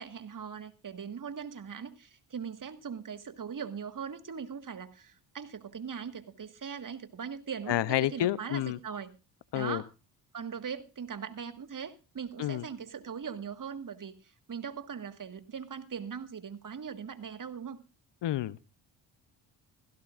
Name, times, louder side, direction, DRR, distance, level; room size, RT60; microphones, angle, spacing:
voice 1, 0.0-9.1 9.5-9.9 10.3-17.8, right 7 dB, 40° right, 1.7 m, -40 dB
voice 2, 7.7-8.8 9.5-9.8 12.4-12.6 18.2-18.6, left 13 dB, 60° left, 0.8 m, -29 dB
16.5 x 16.0 x 2.5 m
hypercardioid pair, 50°, 47 cm